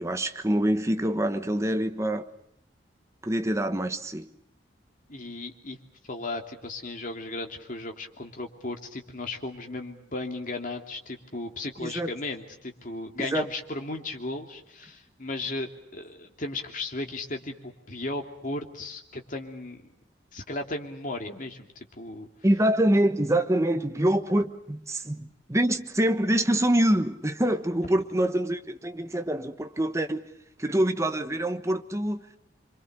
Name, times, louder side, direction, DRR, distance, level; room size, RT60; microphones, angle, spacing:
voice 1, 0.0-2.3 3.2-4.3 11.8-12.1 13.2-13.5 22.4-30.3 30.6-32.2, right 1 dB, 15° right, 1.2 m, -25 dB
voice 2, 5.1-5.8 6.0-19.8 20.3-22.3, left 2 dB, 45° left, 2.9 m, -35 dB
27.0 x 25.0 x 6.8 m
head